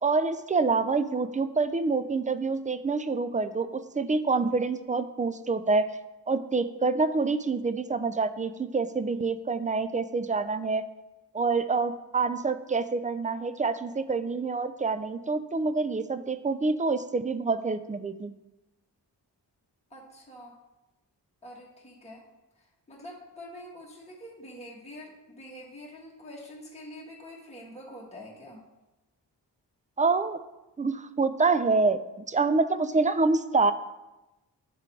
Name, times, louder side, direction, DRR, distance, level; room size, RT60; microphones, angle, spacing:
voice 1, 0.0-5.9 6.3-10.8 11.3-18.3 30.0-30.4 30.8-32.0 32.3-33.7, right 4 dB, 20° right, 12 dB, 0.4 m, -26 dB
voice 2, 19.9-20.6 21.4-22.2 22.6-28.6, equal, 15° left, -4 dB, 1.6 m, -46 dB
8.2 x 3.7 x 4.5 m, 1.0 s
cardioid pair, 55°, 42 cm